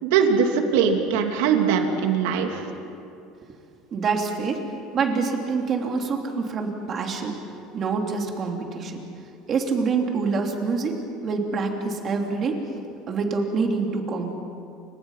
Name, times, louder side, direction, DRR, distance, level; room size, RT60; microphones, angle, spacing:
voice 1, 0.0-2.6, right 6 dB, 90° right, 3 dB, 3.0 m, -21 dB
voice 2, 3.9-4.7 4.9-7.4 7.7-9.0 9.5-12.6 13.1-14.3, right 4 dB, 30° right, 2 dB, 3.1 m, -26 dB
29.0 x 25.5 x 5.8 m, 2.7 s
cardioid pair, 160°, 0 cm